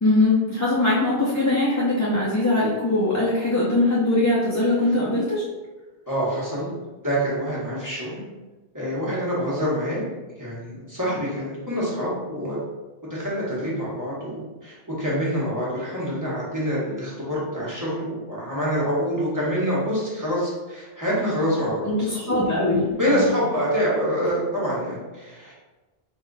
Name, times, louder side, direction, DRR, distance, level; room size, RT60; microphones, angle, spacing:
voice 1, 0.0-5.4 21.8-23.3, left 2 dB, 25° left, -7 dB, 0.5 m, -21 dB
voice 2, 6.1-6.7 7.0-8.2 8.7-10.0 10.4-12.6 13.0-22.4 23.0-25.5, equal, 20° right, -8 dB, 1.3 m, -26 dB
4.0 x 2.4 x 3.9 m, 1.2 s
omnidirectional pair, 1.1 m